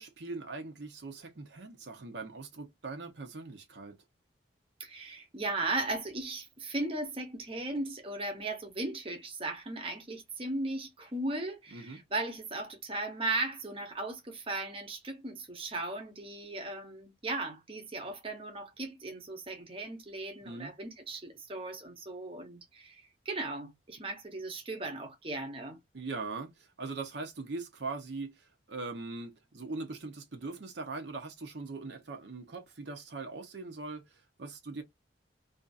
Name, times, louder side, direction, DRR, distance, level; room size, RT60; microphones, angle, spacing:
voice 1, 0.0-4.0 11.7-12.0 20.4-20.7 25.9-34.8, right 3 dB, 65° right, 0.7 m, -41 dB
voice 2, 4.8-25.8, right 2 dB, 30° right, 0.8 m, -37 dB
2.6 x 2.4 x 2.3 m
head